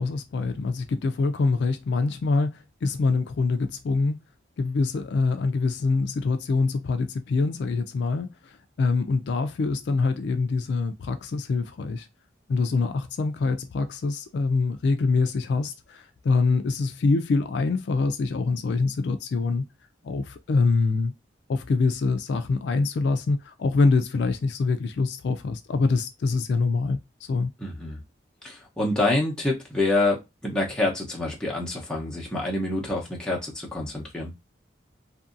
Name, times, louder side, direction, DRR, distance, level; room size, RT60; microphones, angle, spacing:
voice 1, 0.0-4.2 4.6-12.1 12.5-19.7 20.0-21.1 21.5-27.0 27.3-27.5, left 3 dB, 60° left, 0.3 m, -25 dB
voice 2, 27.6-28.0 28.4-34.3, left 2 dB, 5° left, 0.8 m, -27 dB
2.7 x 2.6 x 2.5 m
head